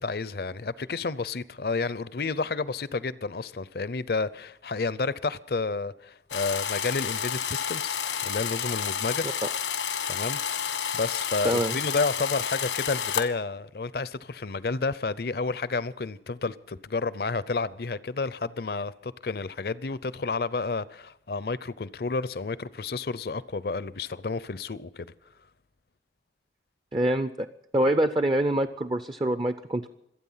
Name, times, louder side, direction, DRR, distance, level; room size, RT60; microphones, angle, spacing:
voice 1, 0.0-8.0 8.3-9.2 10.1-25.1, left 4 dB, 55° left, 0.6 m, -31 dB
sound 1, 6.3-13.2, left 8 dB, 90° left, 1.4 m, -30 dB
voice 2, 11.4-11.8 26.9-27.5 27.7-29.9, right 1 dB, 25° right, 0.5 m, -25 dB
26.0 x 9.0 x 5.6 m
head